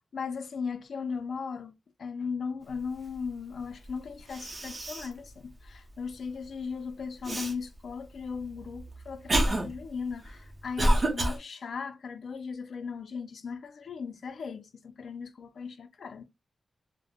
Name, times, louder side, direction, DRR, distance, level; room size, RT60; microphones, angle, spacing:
voice 1, 0.1-1.7 2.0-16.2, left 5 dB, 75° left, 0.4 m, -37 dB
Cough, 3.9-4.0 4.3-5.2 5.7-5.8 7.2-7.5 8.3-11.4, right 1 dB, 40° right, 0.7 m, -28 dB
3.4 x 2.0 x 2.2 m
wide cardioid pair, 115°, 0 cm